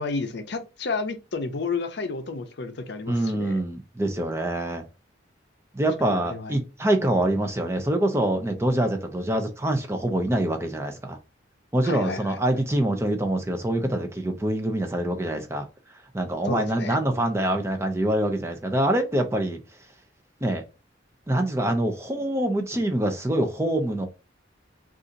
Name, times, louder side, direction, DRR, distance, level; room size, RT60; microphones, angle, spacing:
voice 1, 0.0-3.6 6.0-6.6 11.8-12.4 16.4-17.0, left 4 dB, 60° left, 0.6 m, -31 dB
voice 2, 3.1-4.8 5.7-11.2 11.7-15.7 16.1-19.6 20.4-20.6 21.3-24.1, right 1 dB, 15° right, 0.5 m, -25 dB
2.6 x 2.5 x 3.8 m
head